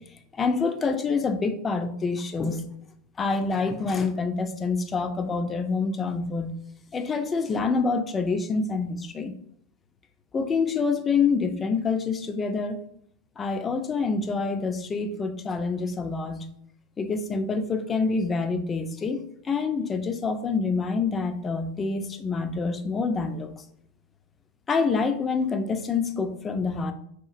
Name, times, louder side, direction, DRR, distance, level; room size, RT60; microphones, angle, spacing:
voice 1, 0.4-2.6 3.2-6.6 6.9-9.3 10.3-12.8 13.4-16.5 17.0-23.5 24.7-26.9, left 4 dB, 25° left, 8 dB, 0.4 m, -26 dB
2.9 x 2.3 x 2.4 m, 0.68 s
hypercardioid pair, 95°, 0 cm